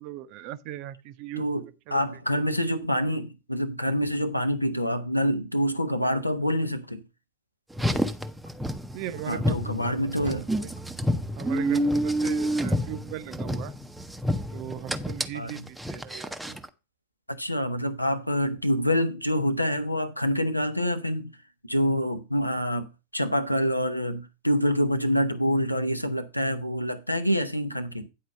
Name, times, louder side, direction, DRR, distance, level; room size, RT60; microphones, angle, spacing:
voice 1, 0.0-1.5 1.9-2.0 7.8-8.0 8.9-10.4 10.6-10.7 11.4-13.7 14.5-16.6, right 13 dB, 45° right, 0.6 m, -38 dB
voice 2, 1.9-7.0 9.3-10.5 15.3-15.6 17.3-21.3 21.7-28.1, equal, 90° left, 0.8 m, -26 dB
Car, 7.7-16.7, equal, 5° right, 0.6 m, -29 dB
9.6 x 4.3 x 6.1 m
figure-of-eight pair, 90°, 0 cm